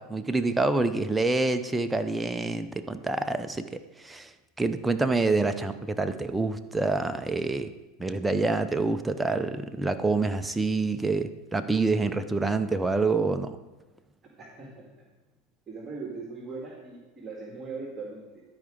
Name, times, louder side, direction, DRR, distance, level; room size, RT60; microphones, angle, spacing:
voice 1, 0.0-4.3 4.6-7.7 8.0-13.6, right 3 dB, 10° right, 8 dB, 0.6 m, -27 dB
voice 2, 14.4-14.9 15.7-18.4, right 4 dB, 25° right, -2 dB, 2.0 m, -39 dB
12.5 x 4.9 x 5.1 m, 1.1 s
hypercardioid pair, 95°, 0 cm